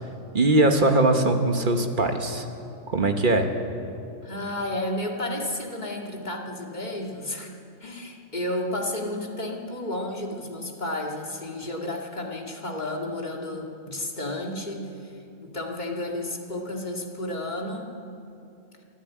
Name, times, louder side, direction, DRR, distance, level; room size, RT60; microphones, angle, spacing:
voice 1, 0.3-2.4 2.9-3.5, right 2 dB, 40° right, 5 dB, 1.5 m, -21 dB
voice 2, 4.2-7.5 7.8-15.1 15.4-17.9, left 1 dB, 35° left, 0 dB, 2.2 m, -32 dB
24.0 x 13.0 x 8.6 m, 2.7 s
omnidirectional pair, 1.4 m